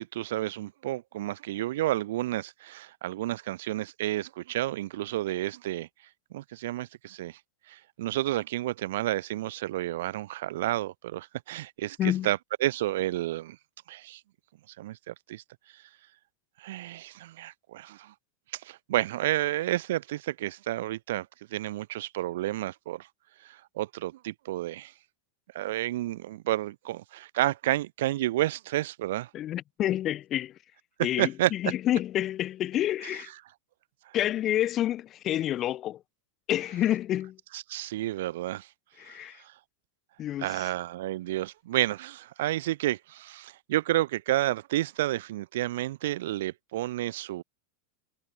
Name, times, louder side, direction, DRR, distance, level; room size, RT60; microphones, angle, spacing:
voice 1, 0.0-5.9 6.3-7.4 7.7-12.0 12.2-13.6 13.9-14.2 14.8-15.4 16.6-18.1 18.5-21.3 21.5-23.1 23.4-24.9 25.5-29.3 31.2-31.5 37.5-38.7 39.1-39.2 40.4-47.4, right 15 dB, 55° right, 2.2 m, -30 dB
voice 2, 12.0-12.3 29.3-30.6 31.0-33.3 34.1-36.0 36.5-37.4 39.0-39.4 40.2-40.7, left 12 dB, 30° left, 7.5 m, -28 dB
figure-of-eight pair, 90°, 0 cm